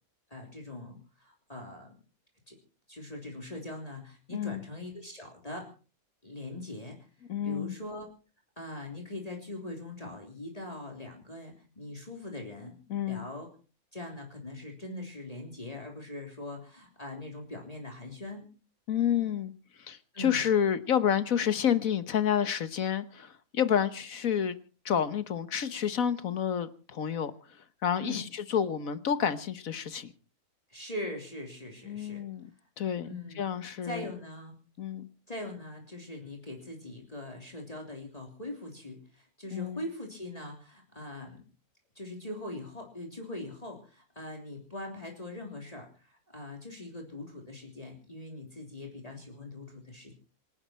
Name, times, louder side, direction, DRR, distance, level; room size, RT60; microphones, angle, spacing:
voice 1, 0.3-2.0 2.5-2.6 2.9-5.7 6.2-7.0 7.4-8.1 8.6-12.7 13.1-13.5 13.9-18.4 20.1-20.4 28.0-28.2 30.7-32.2 33.0-33.4 33.8-34.6 35.3-41.4 42.0-50.1, left 1 dB, 25° left, 3.4 m, -41 dB
voice 2, 4.3-4.6 7.3-7.8 12.9-13.2 18.9-19.5 19.8-24.5 24.8-27.3 27.8-30.1 31.8-32.5 32.8-33.1 33.4-34.1 34.8-35.1 39.5-39.9, left 8 dB, 70° left, 1.6 m, -29 dB
26.5 x 11.0 x 4.4 m
omnidirectional pair, 1.5 m